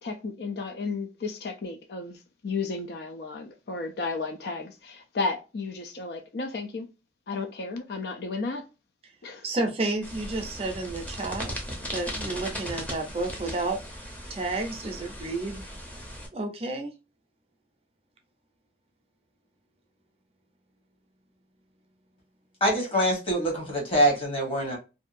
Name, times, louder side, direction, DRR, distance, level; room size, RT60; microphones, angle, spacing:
voice 1, 0.0-2.2 2.4-6.9 7.3-8.7 9.2-9.4, left 3 dB, 65° left, 0.4 m, -33 dB
voice 2, 9.4-11.5 11.9-13.8 14.3-15.6 16.3-16.9, right 2 dB, 35° right, 0.5 m, -31 dB
sound 1, 10.0-16.3, equal, 10° left, 0.6 m, -38 dB
voice 3, 22.6-24.8, equal, 30° left, 1.1 m, -24 dB
2.7 x 2.2 x 2.4 m
head